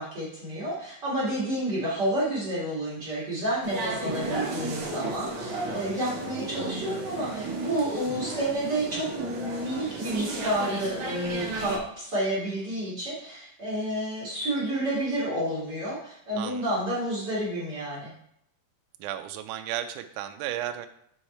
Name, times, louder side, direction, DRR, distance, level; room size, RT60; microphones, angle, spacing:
voice 1, 0.0-18.1, right 1 dB, 35° right, -8 dB, 2.0 m, -30 dB
sound 1, 3.6-11.8, right 2 dB, 60° right, 1.3 m, -34 dB
voice 2, 16.3-16.7 19.0-20.9, right 11 dB, 85° right, 8 dB, 1.7 m, -34 dB
6.3 x 4.8 x 4.2 m, 0.72 s
omnidirectional pair, 4.1 m